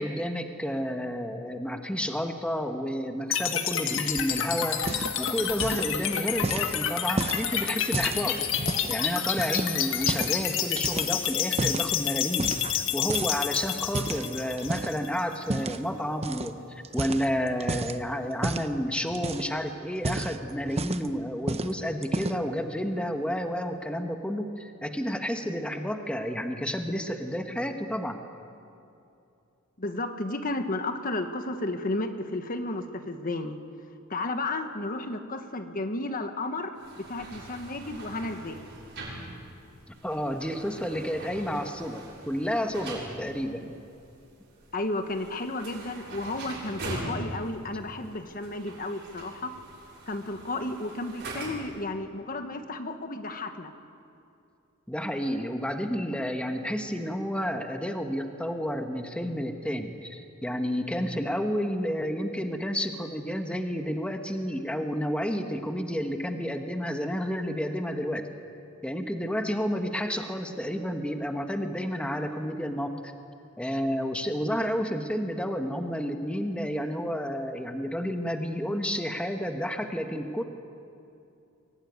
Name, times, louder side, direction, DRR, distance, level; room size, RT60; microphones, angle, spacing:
voice 1, 0.0-8.4 8.9-28.2 40.0-43.7 54.9-68.3 68.8-73.1 73.6-80.4, equal, 5° left, 5 dB, 1.2 m, -31 dB
sound 1, 3.3-15.3, left 9 dB, 65° left, 1.6 m, -29 dB
sound 2, 4.7-5.3 5.5-5.9 6.4-9.0 9.4-10.4 10.8-11.9 12.4-12.8 13.1-15.0 15.5-15.8 16.2-16.5 16.8-18.0 18.4-18.7 19.1-19.6 19.9-21.1 21.5-21.7 22.0-22.5, right 2 dB, 30° right, 0.8 m, -32 dB
voice 2, 29.8-33.6 34.1-38.6 44.7-49.5 50.1-53.7, left 2 dB, 40° left, 7 dB, 1.2 m, -33 dB
sound 3, 36.8-51.8, right 2 dB, 55° right, 6.7 m, -42 dB
23.5 x 17.0 x 9.5 m, 2.6 s
head